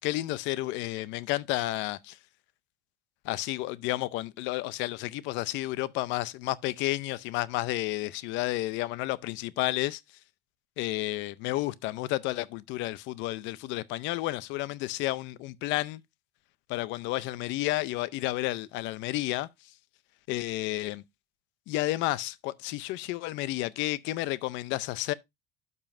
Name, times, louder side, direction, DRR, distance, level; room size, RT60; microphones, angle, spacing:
voice 1, 0.0-2.2 3.2-10.0 10.8-16.0 16.7-19.7 20.3-21.0 21.7-25.1, left 17 dB, 75° left, 0.6 m, -31 dB
12.0 x 5.5 x 2.6 m
cardioid pair, 120°, 19 cm